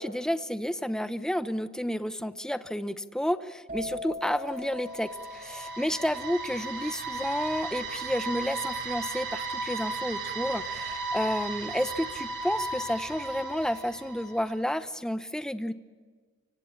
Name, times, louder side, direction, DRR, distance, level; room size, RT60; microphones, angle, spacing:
voice 1, 0.0-15.7, equal, 5° left, 11 dB, 0.8 m, -31 dB
sound 1, 3.7-11.3 11.5-12.0, left 2 dB, 35° right, 4.1 m, -43 dB
sound 2, 4.4-14.5, right 2 dB, 55° right, 3.4 m, -35 dB
28.5 x 24.5 x 7.2 m, 1.5 s
head